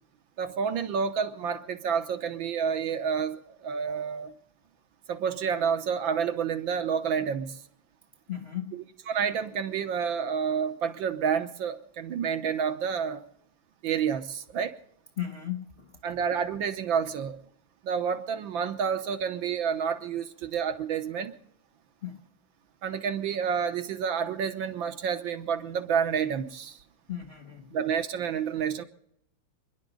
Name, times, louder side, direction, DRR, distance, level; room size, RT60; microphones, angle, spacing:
voice 1, 0.4-4.3 5.1-7.6 9.1-13.2 13.8-14.8 16.0-17.4 17.8-21.3 22.8-26.8 27.7-28.8, right 7 dB, 65° right, 1.6 m, -29 dB
voice 2, 8.3-8.9 15.2-15.9 22.0-22.2 27.1-27.8, left 11 dB, 45° left, 0.8 m, -36 dB
27.0 x 11.0 x 3.9 m
omnidirectional pair, 2.4 m